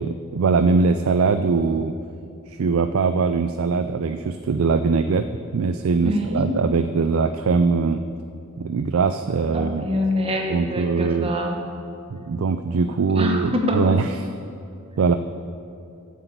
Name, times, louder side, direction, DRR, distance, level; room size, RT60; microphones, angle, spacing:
voice 1, 0.0-2.0 2.5-5.3 5.5-8.0 8.6-9.9 10.5-11.3 12.1-14.3 15.0-15.2, right 4 dB, 70° right, 10 dB, 0.4 m, -21 dB
voice 2, 6.0-6.5 9.5-11.6 13.1-13.8, left 1 dB, 25° right, 2 dB, 1.2 m, -25 dB
10.0 x 8.2 x 8.0 m, 2.6 s
head